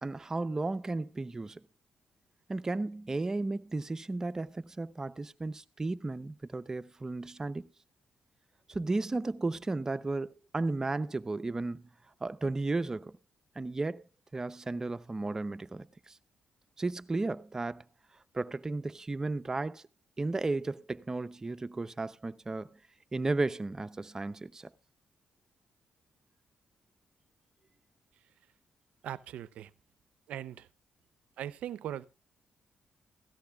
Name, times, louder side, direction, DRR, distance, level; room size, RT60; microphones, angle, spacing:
voice 1, 0.0-1.6 2.5-7.7 8.7-10.3 10.5-11.9 12.2-13.2 13.6-14.0 14.3-16.1 16.8-17.8 18.3-19.8 20.2-22.8 23.1-24.7, right 3 dB, 25° right, 0.7 m, -34 dB
voice 2, 29.0-29.7 30.3-30.7 31.4-32.0, right 11 dB, 85° right, 0.5 m, -39 dB
16.5 x 13.5 x 2.3 m
cardioid pair, 75°, 2 cm